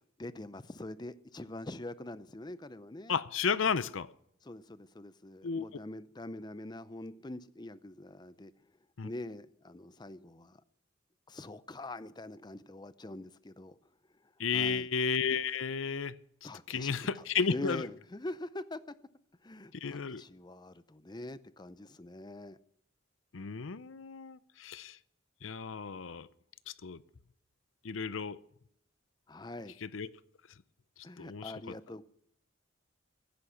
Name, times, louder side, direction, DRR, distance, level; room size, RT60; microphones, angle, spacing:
voice 1, 0.2-3.2 4.4-8.5 9.0-10.6 11.3-13.8 14.2-14.9 16.4-18.8 19.4-22.6 29.3-29.8 31.0-32.0, left 2 dB, 20° left, 0.6 m, -44 dB
voice 2, 3.1-4.1 5.4-5.6 9.0-9.1 14.4-16.1 16.7-17.9 19.8-20.2 23.3-25.0 25.4-26.3 26.8-27.0 27.8-28.4 29.8-30.1 31.2-31.5, left 6 dB, 80° left, 0.7 m, -33 dB
16.0 x 10.5 x 5.8 m
head